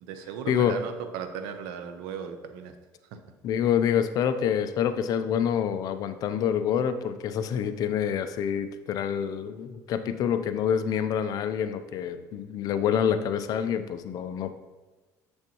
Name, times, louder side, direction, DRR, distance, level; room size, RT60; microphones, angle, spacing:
voice 1, 0.0-2.7 3.1-3.2, right 7 dB, 90° right, 8 dB, 0.7 m, -37 dB
voice 2, 3.4-14.5, left 8 dB, 55° left, 10 dB, 0.5 m, -27 dB
7.1 x 6.4 x 3.0 m, 1.2 s
cardioid pair, 115°, 7 cm